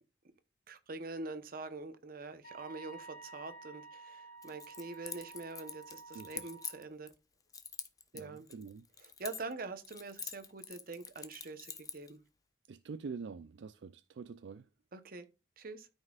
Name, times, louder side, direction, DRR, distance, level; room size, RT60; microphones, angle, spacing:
voice 1, 0.7-7.1 8.1-8.5 9.2-12.2 14.9-15.3 15.6-15.9, right 3 dB, 55° right, 0.9 m, -44 dB
Wind instrument woodwind instrument, 2.4-6.8, right 4 dB, 55° left, 2.5 m, -52 dB
Keys jangling, 4.4-7.1 7.5-9.6 9.8-12.1, left 6 dB, 20° left, 0.7 m, -45 dB
voice 2, 6.1-6.5 8.1-8.9 12.7-14.7, right 5 dB, 80° right, 0.4 m, -46 dB
13.0 x 5.4 x 2.4 m
head